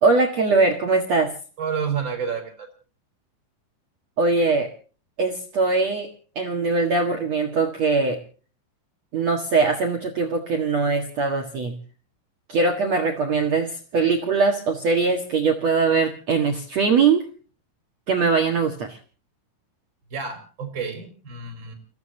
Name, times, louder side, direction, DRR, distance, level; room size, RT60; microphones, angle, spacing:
voice 1, 0.0-1.3 4.2-4.7 5.2-6.1 6.3-8.2 9.1-11.8 12.5-17.3 18.1-19.0, right 4 dB, 65° right, 2 dB, 1.6 m, -21 dB
voice 2, 1.6-2.7 20.1-21.7, right 6 dB, 25° right, 5 dB, 5.3 m, -29 dB
30.0 x 16.5 x 2.9 m, 0.39 s
omnidirectional pair, 5.8 m